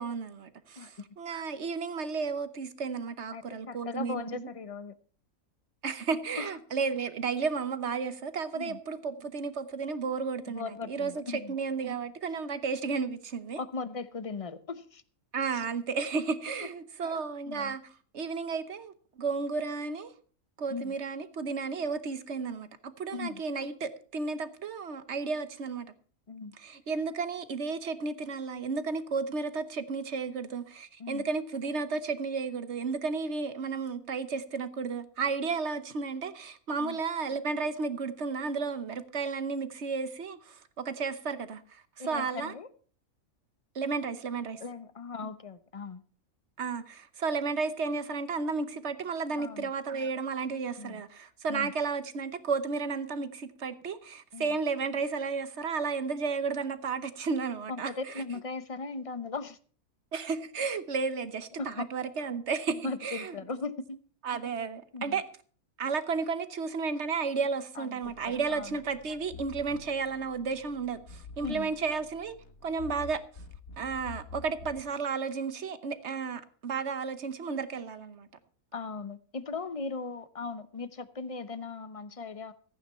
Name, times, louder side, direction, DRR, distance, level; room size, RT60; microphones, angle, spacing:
voice 1, 0.0-4.5 5.8-13.6 15.3-20.1 20.6-25.9 26.6-42.5 43.7-44.6 46.6-57.9 60.1-63.3 64.2-65.2 65.8-72.3 72.6-73.2 73.8-78.3, right 5 dB, 55° right, 1.2 m, -33 dB
voice 2, 3.3-4.9 6.4-6.5 8.5-8.8 10.5-11.5 13.6-15.0 17.0-17.2 17.5-17.8 20.7-20.9 23.1-23.4 26.3-26.6 31.0-31.3 36.8-37.0 42.0-42.7 44.6-46.0 49.4-49.7 50.8-51.0 51.5-51.7 54.3-54.6 57.7-59.6 61.6-61.9 62.8-64.0 64.9-65.2 67.7-68.8 71.4-71.7 78.7-82.5, left 4 dB, 30° left, 0.6 m, -38 dB
sound 1, 68.0-74.9, left 4 dB, 75° left, 2.2 m, -48 dB
14.5 x 9.3 x 5.6 m
omnidirectional pair, 1.5 m